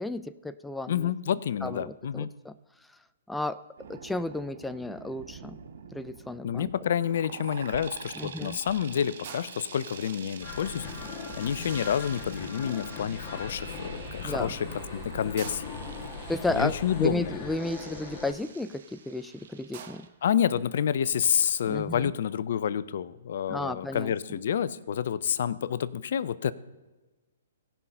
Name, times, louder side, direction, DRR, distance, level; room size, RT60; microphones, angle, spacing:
voice 1, 0.0-1.1 1.6-2.5 3.3-3.6 3.9-5.6 5.9-6.7 8.2-8.6 14.2-14.5 16.3-20.1 21.7-22.1 23.5-24.1, left 2 dB, 5° left, 11 dB, 0.3 m, -33 dB
voice 2, 0.9-2.3 6.4-10.9 11.4-14.7 14.9-15.8 16.5-17.3 20.2-26.5, left 9 dB, 60° left, 17 dB, 0.5 m, -28 dB
sound 1, 3.8-20.1, right 6 dB, 65° right, 1.1 m, -46 dB
sound 2, 6.6-7.0 7.2-12.8 13.3-14.0 14.5-14.6 14.7-14.8 15.2-18.8 19.2-19.3 19.5-20.3, right 7 dB, 50° right, 1.1 m, -49 dB
sound 3, 10.4-18.3, left 4 dB, 25° left, 1.6 m, -39 dB
16.5 x 5.7 x 5.3 m, 1.2 s
hypercardioid pair, 135°, 0 cm